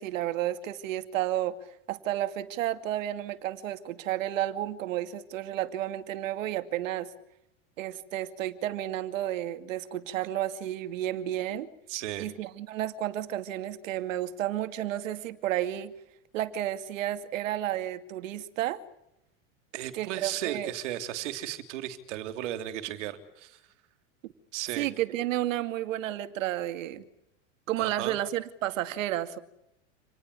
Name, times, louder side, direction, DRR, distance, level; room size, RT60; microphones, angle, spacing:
voice 1, 0.0-1.5 1.9-7.1 7.8-11.7 12.2-15.9 16.3-18.8 19.9-20.7 24.8-27.0 27.7-29.4, right 13 dB, 80° right, 10 dB, 2.5 m, -31 dB
voice 2, 11.9-12.3 19.7-23.6 24.5-24.9 27.8-28.2, right 12 dB, 65° right, 9 dB, 3.4 m, -35 dB
28.0 x 20.0 x 8.5 m, 0.84 s
supercardioid pair, 170°, 38 cm